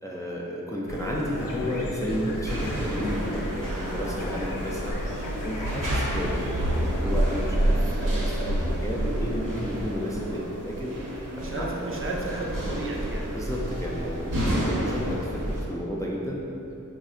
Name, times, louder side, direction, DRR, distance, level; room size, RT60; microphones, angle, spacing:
voice 1, 0.0-5.0 5.4-11.7 13.3-16.4, equal, 10° left, -4 dB, 0.3 m, -32 dB
sound 1, 0.9-7.5, equal, 85° left, 0.5 m, -35 dB
sound 2, 2.5-15.6, right 1 dB, 85° right, 0.8 m, -29 dB
voice 2, 11.4-13.3 14.7-15.0, right 2 dB, 40° right, -2 dB, 0.5 m, -33 dB
3.5 x 2.1 x 3.5 m, 2.8 s
wide cardioid pair, 60°, 32 cm